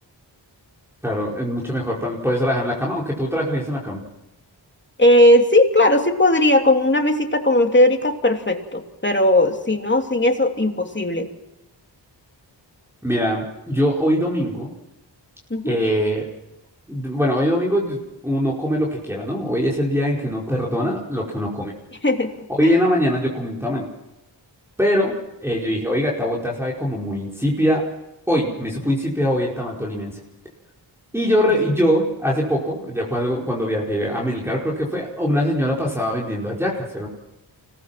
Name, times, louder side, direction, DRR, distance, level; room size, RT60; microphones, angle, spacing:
voice 1, 1.0-4.0 13.0-14.7 15.6-16.3 16.9-21.7 22.5-23.9 24.8-25.1 25.4-27.8 28.3-30.2 31.1-37.1, equal, 5° right, -4 dB, 5.0 m, -22 dB
voice 2, 5.0-11.3 15.5-15.8 22.0-22.3 22.6-22.8, left 1 dB, 25° left, 3 dB, 3.1 m, -17 dB
25.0 x 19.0 x 6.0 m, 0.97 s
cardioid pair, 45°, 44 cm